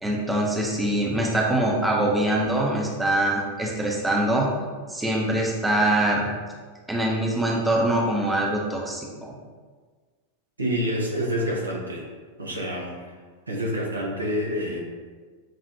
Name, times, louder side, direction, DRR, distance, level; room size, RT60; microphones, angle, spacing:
voice 1, 0.0-4.5 4.9-6.3 6.9-9.3, right 1 dB, 5° right, -2 dB, 0.8 m, -23 dB
voice 2, 10.6-12.1 12.4-13.1 13.5-14.8, equal, 80° right, -2 dB, 0.8 m, -27 dB
7.1 x 2.4 x 2.8 m, 1.5 s
figure-of-eight pair, 90°, 0 cm